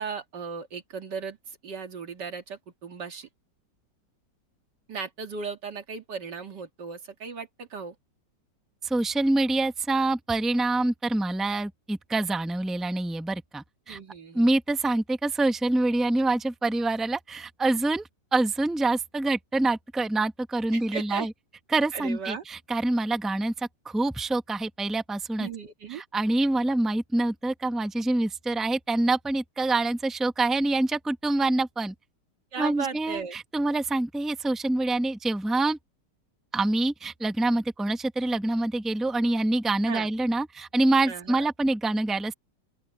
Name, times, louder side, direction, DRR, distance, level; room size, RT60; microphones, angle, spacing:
voice 1, 0.0-3.3 4.9-7.9 13.9-14.5 20.7-21.3 21.9-22.4 25.4-26.0 32.5-33.4 39.9-40.1 41.1-41.5, right 5 dB, 70° right, 2.8 m, -36 dB
voice 2, 8.8-14.0 14.3-21.3 21.7-25.5 25.9-31.9 32.6-35.8 36.5-42.3, right 2 dB, ahead, 0.8 m, -26 dB
open air
omnidirectional pair, 1.9 m